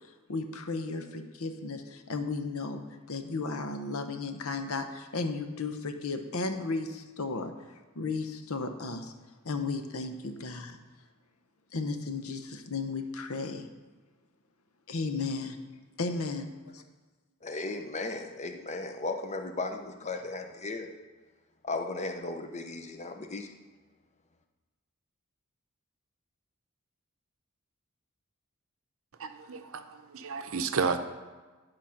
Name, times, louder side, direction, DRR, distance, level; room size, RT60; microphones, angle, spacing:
voice 1, 0.3-2.8 3.1-7.5 8.0-9.1 9.4-10.8 11.7-13.7 14.9-15.6 16.0-16.5, left 3 dB, 70° left, 7 dB, 0.8 m, -34 dB
voice 2, 17.4-20.9 21.6-23.5, left 3 dB, 30° left, 6 dB, 0.7 m, -36 dB
voice 3, 29.2-31.0, right 5 dB, 65° right, 9 dB, 0.7 m, -32 dB
11.0 x 4.9 x 5.8 m, 1.3 s
head